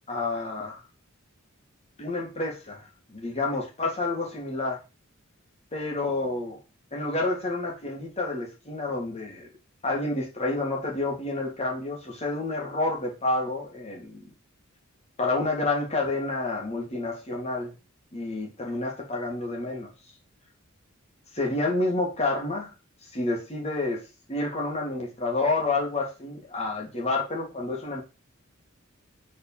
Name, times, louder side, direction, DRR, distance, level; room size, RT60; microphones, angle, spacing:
voice 1, 0.1-0.8 2.0-4.8 5.7-6.6 6.9-9.5 9.8-14.3 15.2-17.7 18.1-19.9 21.3-22.7 23.1-24.0 24.3-28.0, left 2 dB, 30° left, -1 dB, 2.1 m, -29 dB
4.8 x 4.2 x 5.5 m, 0.29 s
head